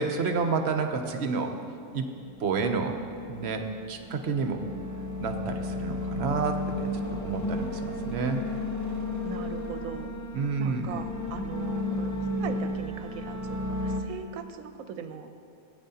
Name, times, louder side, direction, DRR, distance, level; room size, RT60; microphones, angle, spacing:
voice 1, 0.0-1.5 1.9-2.1 2.4-3.0 3.3-4.6 5.2-8.4 10.3-10.9, right 4 dB, 60° right, 6 dB, 0.8 m, -29 dB
sound 1, 2.1-14.0, left 2 dB, 20° left, 0.5 m, -33 dB
voice 2, 9.2-10.1 10.6-12.1 12.4-15.3, right 6 dB, 80° right, 8 dB, 1.0 m, -39 dB
15.5 x 9.0 x 2.8 m, 2.5 s
omnidirectional pair, 1.5 m